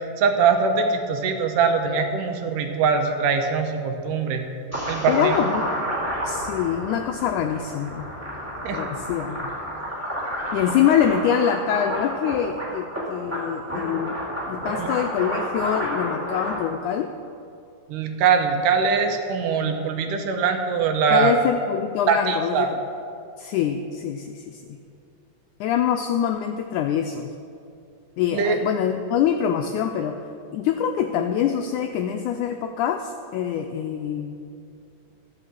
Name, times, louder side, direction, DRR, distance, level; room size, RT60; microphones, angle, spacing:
voice 1, 0.2-4.5 4.9-5.4 8.6-8.8 14.7-14.9 17.9-21.3 22.1-22.7 28.3-28.6, right 5 dB, 75° right, 5 dB, 2.3 m, -22 dB
sound 1, 4.7-16.6, equal, 5° right, 2.0 m, -30 dB
voice 2, 5.1-5.7 6.2-8.1 8.7-9.5 10.5-14.2 14.5-17.1 21.1-22.8 23.4-24.8 25.6-27.3 28.2-30.2 30.5-34.4, left 9 dB, 85° left, 5 dB, 1.7 m, -25 dB
13.5 x 5.6 x 7.4 m, 2.5 s
omnidirectional pair, 4.0 m